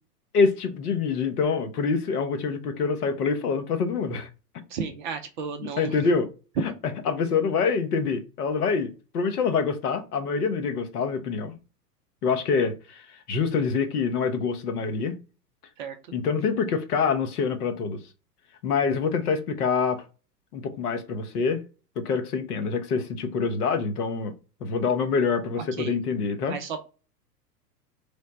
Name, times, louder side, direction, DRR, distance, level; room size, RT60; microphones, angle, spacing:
voice 1, 0.3-4.3 5.8-6.3 7.1-11.6 12.2-15.2 16.1-18.0 18.6-20.0 20.5-21.6 22.0-24.3 24.6-26.6, left 5 dB, 65° left, 0.9 m, -26 dB
voice 2, 4.7-6.0 15.8-16.0 25.6-26.0 26.5-26.8, right 6 dB, 35° right, 0.4 m, -34 dB
3.3 x 2.1 x 3.9 m
hypercardioid pair, 105°, 49 cm